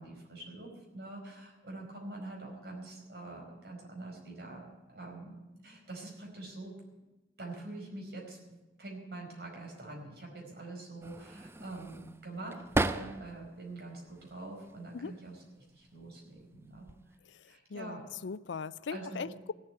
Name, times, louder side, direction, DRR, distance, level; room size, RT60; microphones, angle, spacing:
voice 1, 0.0-6.7 7.4-17.2 17.4-18.0 18.9-19.3, right 2 dB, 60° right, 0 dB, 4.9 m, -45 dB
sound 1, 11.0-13.5 13.9-14.8 15.7-16.0 16.4-17.2, right 2 dB, 15° right, 0.4 m, -36 dB
voice 2, 17.2-19.5, left 5 dB, 90° left, 18 dB, 0.5 m, -40 dB
16.0 x 8.0 x 9.8 m, 1.1 s
head